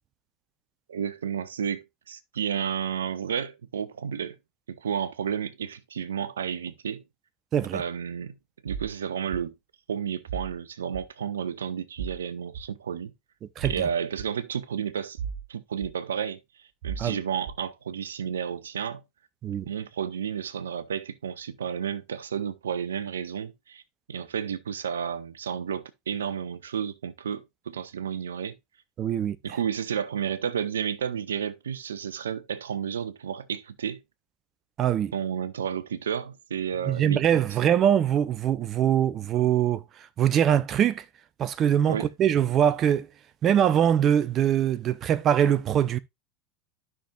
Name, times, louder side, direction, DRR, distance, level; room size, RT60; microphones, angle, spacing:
voice 1, 0.9-4.4 4.7-7.0 7.7-8.3 8.6-9.5 9.9-13.1 13.6-15.2 15.5-16.4 16.8-19.0 19.6-23.8 24.1-28.6 29.4-34.0 35.1-37.4 41.9-42.1, right 8 dB, 70° right, 0.7 m, -31 dB
voice 2, 7.5-7.8 13.6-13.7 17.0-17.2 19.4-19.6 29.0-29.4 34.8-35.1 36.9-39.8 40.2-41.0 41.4-43.1 43.4-46.0, right 9 dB, 35° right, 0.6 m, -23 dB
sound 1, 8.7-8.9 9.3-9.4 10.3-10.5 10.9-11.1 12.0-12.2 12.5-12.6 13.6-13.8 14.2-14.3 15.2-15.4 15.8-15.9 16.8-17.1 17.4-17.6, right 7 dB, 50° right, 2.8 m, -34 dB
12.5 x 6.0 x 2.3 m
figure-of-eight pair, 80°, 0 cm